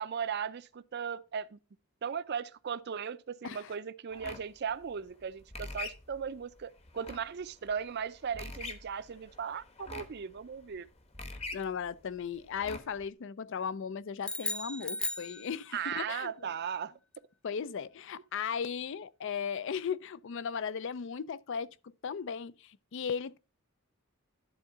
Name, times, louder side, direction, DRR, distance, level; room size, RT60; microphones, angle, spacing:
voice 1, 0.0-1.6 2.0-10.9 15.7-16.9, right 7 dB, 55° right, 0.5 m, -37 dB
sound 1, 4.1-13.1, left 3 dB, 30° left, 1.1 m, -45 dB
voice 2, 11.5-16.5 17.4-23.4, left 6 dB, 65° left, 0.4 m, -37 dB
sound 2, 14.2-16.0, left 2 dB, 5° left, 0.5 m, -36 dB
11.0 x 3.8 x 5.5 m
head